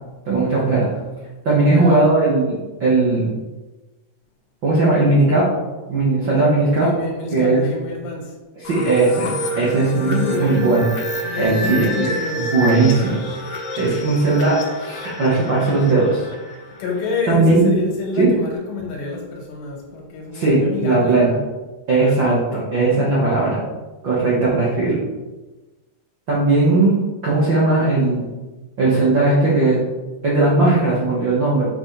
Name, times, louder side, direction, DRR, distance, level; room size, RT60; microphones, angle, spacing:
voice 1, 0.2-0.9 1.4-3.3 4.6-5.5 5.9-6.9 7.3-7.6 8.6-9.3 9.6-10.8 11.4-11.9 12.4-13.1 13.8-16.2 17.3-17.7 18.2-18.3 20.3-21.3 21.9-23.6 24.0-25.0 26.3-27.0 27.2-28.2 28.8-29.8 30.2-31.6, right 2 dB, 80° right, -7 dB, 1.0 m, -17 dB
voice 2, 1.5-2.0 6.8-8.3 9.6-10.9 11.2-12.5 16.8-21.2 22.0-22.4, left 4 dB, 85° left, 0 dB, 3.7 m, -28 dB
sound 1, 8.6-17.3, equal, 60° left, 2.0 m, -28 dB
7.4 x 6.3 x 3.4 m, 1.2 s
omnidirectional pair, 4.8 m